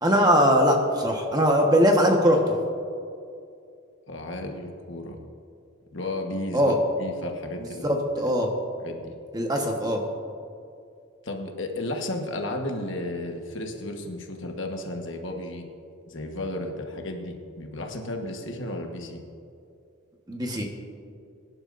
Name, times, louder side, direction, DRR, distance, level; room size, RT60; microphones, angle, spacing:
voice 1, 0.0-2.4 6.5-6.8 7.8-8.5 9.3-10.0 20.3-20.6, equal, 20° right, 1 dB, 1.2 m, -21 dB
voice 2, 4.1-5.2 5.9-8.3 8.8-9.1 11.2-15.7 16.1-19.2, left 1 dB, 60° left, 3 dB, 1.3 m, -33 dB
22.5 x 11.0 x 2.6 m, 2.4 s
head